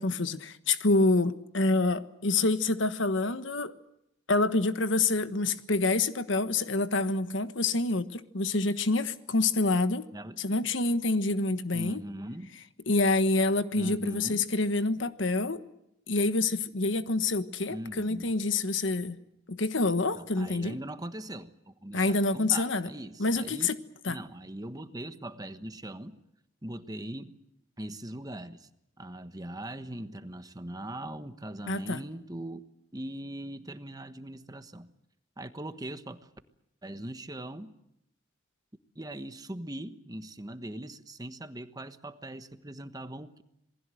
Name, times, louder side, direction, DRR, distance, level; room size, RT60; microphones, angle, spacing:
voice 1, 0.0-3.7 4.3-10.1 10.4-12.0 12.9-15.6 16.1-19.2 19.5-20.8 21.9-22.9 23.2-23.8 24.0-24.2 31.7-32.0, left 3 dB, 80° left, 1.3 m, -27 dB
voice 2, 10.1-10.5 11.7-12.6 13.7-14.5 17.7-18.3 20.1-23.7 24.1-26.2 26.6-27.3 27.8-28.7 29.0-32.6 32.9-34.9 35.4-36.3 36.8-37.7 38.9-43.4, right 1 dB, 20° right, 1.2 m, -40 dB
27.5 x 20.0 x 7.8 m
head